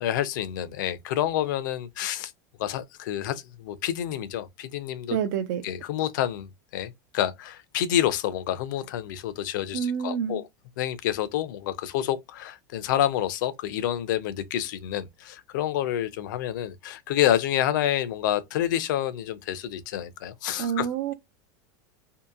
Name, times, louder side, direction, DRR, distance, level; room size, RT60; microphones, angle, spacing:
voice 1, 0.0-2.3 2.6-5.2 5.6-10.4 10.8-20.9, left 11 dB, 70° left, 0.5 m, -28 dB
voice 2, 5.1-5.6 9.7-10.4 20.6-21.1, right 8 dB, 60° right, 0.4 m, -28 dB
2.8 x 2.5 x 2.3 m
supercardioid pair, 165°, 11 cm